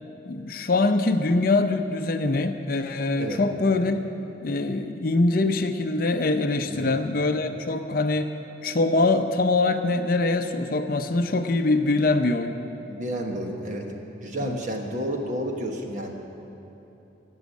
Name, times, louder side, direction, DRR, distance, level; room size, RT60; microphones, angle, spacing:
voice 1, 0.3-4.0 4.4-8.3 8.6-12.5 14.4-14.6, left 2 dB, 50° left, 7 dB, 0.6 m, -23 dB
voice 2, 6.7-7.0 12.9-13.9 14.2-16.1, equal, 40° right, 2 dB, 1.3 m, -31 dB
15.5 x 6.3 x 9.4 m, 3.0 s
head